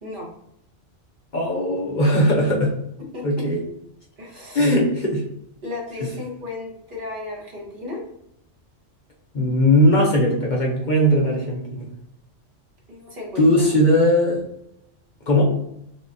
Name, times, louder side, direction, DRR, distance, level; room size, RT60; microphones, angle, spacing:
voice 1, 1.3-2.7 3.2-3.6 4.5-5.2 6.0-6.1 9.3-11.9 13.4-14.4 15.3-15.4, equal, 45° left, -2 dB, 0.8 m, -19 dB
voice 2, 3.1-3.5 4.2-4.7 5.6-8.0 12.9-13.7, left 2 dB, 45° right, -2 dB, 1.3 m, -34 dB
6.4 x 2.4 x 2.7 m, 0.76 s
omnidirectional pair, 1.3 m